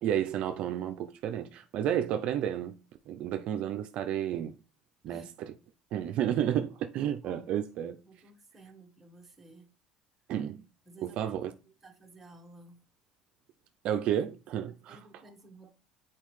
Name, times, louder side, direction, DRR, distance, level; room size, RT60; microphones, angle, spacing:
voice 1, 0.0-2.8 3.1-4.5 5.0-5.5 5.9-8.0 10.3-10.6 11.0-11.5 13.8-15.0, right 10 dB, 60° right, 0.4 m, -31 dB
voice 2, 5.1-5.4 7.2-7.6 8.0-9.7 10.9-12.8 14.9-15.7, right 2 dB, 10° right, 1.2 m, -54 dB
7.5 x 4.2 x 3.2 m
cardioid pair, 115°, 2 cm